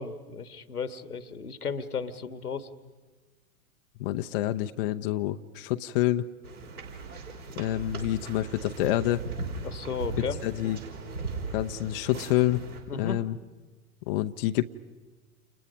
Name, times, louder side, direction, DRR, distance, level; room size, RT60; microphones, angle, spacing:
voice 1, 0.0-2.7 9.6-10.4 12.9-13.2, left 5 dB, 80° left, 12 dB, 1.7 m, -34 dB
voice 2, 4.0-6.3 7.6-9.2 10.4-10.8 11.5-12.6 13.0-13.3 14.1-14.6, left 14 dB, 40° left, 8 dB, 0.8 m, -27 dB
sound 1, 6.4-12.8, right 3 dB, 70° right, 5.6 m, -38 dB
30.0 x 29.0 x 5.4 m, 1.3 s
figure-of-eight pair, 95°, 45 cm